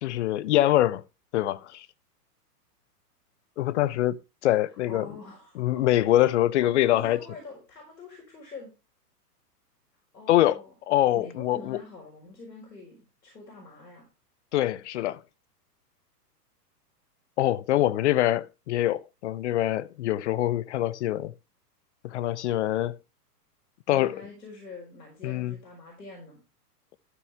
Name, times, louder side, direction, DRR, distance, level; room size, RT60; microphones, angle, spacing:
voice 1, 0.0-1.0 1.3-1.9 3.6-5.1 5.6-7.2 10.3-10.6 10.9-11.8 14.5-15.2 17.4-21.3 22.0-23.0 23.9-24.2 25.2-25.6, left 14 dB, 45° left, 0.5 m, -24 dB
voice 2, 4.9-6.3 6.7-8.7 10.1-10.7 11.1-14.1 23.9-26.4, left 3 dB, 85° left, 4.4 m, -45 dB
12.5 x 6.9 x 3.3 m
hypercardioid pair, 115°, 48 cm